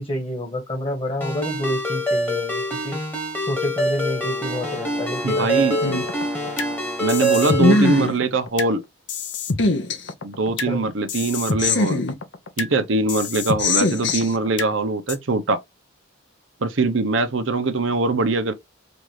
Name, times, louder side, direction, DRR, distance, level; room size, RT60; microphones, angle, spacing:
voice 1, 0.0-3.0 3.5-5.7 10.7-10.9, equal, 25° left, 1.6 m, -28 dB
Ringtone, 1.2-8.1, equal, 10° left, 1.2 m, -25 dB
sound 1, 3.9-7.8, right 2 dB, 10° right, 0.5 m, -37 dB
voice 2, 5.2-5.8 7.0-8.8 9.6-9.7 10.2-12.0 12.6-15.6 16.6-18.5, right 3 dB, 65° right, 0.7 m, -22 dB
sound 2, 5.8-6.7 7.1-8.7 9.1-10.7 11.1-12.7 13.1-14.7 15.1-15.2, left 3 dB, 60° left, 0.8 m, -23 dB
5.1 x 2.6 x 3.1 m
head